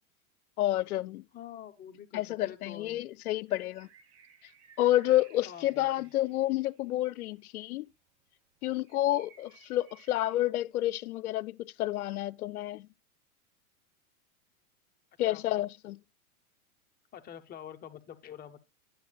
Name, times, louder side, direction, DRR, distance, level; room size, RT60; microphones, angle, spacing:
voice 1, 0.6-1.2 2.1-3.9 4.8-7.9 8.6-12.9 15.2-16.0, left 14 dB, 80° left, 0.6 m, -29 dB
voice 2, 1.3-3.0 5.4-6.1 15.2-15.4 17.1-18.6, left 9 dB, 20° left, 0.8 m, -47 dB
sound 1, 2.4-2.5 3.2-7.6 7.9-8.0 8.2-8.3 8.6-10.4, right 6 dB, 35° right, 1.5 m, -61 dB
10.5 x 7.4 x 2.3 m
hypercardioid pair, 110°, 43 cm